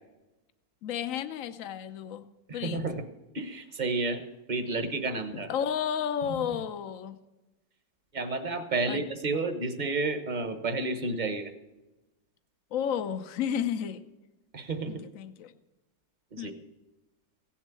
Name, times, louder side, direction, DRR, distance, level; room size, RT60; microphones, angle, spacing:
voice 1, 0.8-2.2 2.5-2.9 5.3-7.2 8.9-9.0 12.7-14.0 14.8-15.5 16.4-16.5, left 8 dB, 55° left, 11 dB, 1.1 m, -32 dB
voice 2, 2.5-3.0 3.3-4.2 4.5-5.5 8.1-11.5 14.5-15.0 16.3-16.5, right 3 dB, 30° right, 9 dB, 1.0 m, -31 dB
16.5 x 7.3 x 8.3 m, 1.1 s
omnidirectional pair, 1.9 m